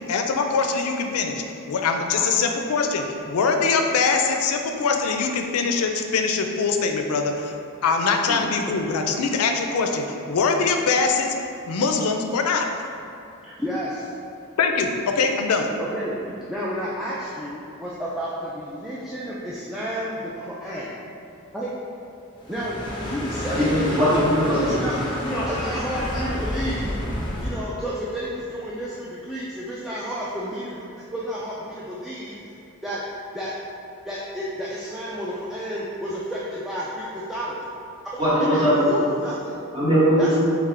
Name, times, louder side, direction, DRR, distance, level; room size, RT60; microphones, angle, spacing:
voice 1, 0.1-7.6 7.8-11.3 11.7-12.7 14.6-15.7, left 4 dB, 85° left, 4 dB, 0.4 m, -23 dB
voice 2, 13.6-14.1 15.8-16.2 16.5-21.0 21.5-21.7 22.5-23.8 24.1-24.3 24.6-27.0 27.4-30.8 31.1-32.4 32.8-33.0 33.3-33.5 34.1-37.6 38.4-39.6 40.2-40.4, equal, ahead, -8 dB, 0.3 m, -31 dB
sound 1, 22.4-27.6, left 1 dB, 20° left, 0.8 m, -29 dB
voice 3, 23.5-24.8 38.2-38.7 39.7-40.4, equal, 25° right, -10 dB, 1.3 m, -20 dB
3.6 x 3.5 x 3.2 m, 2.6 s
head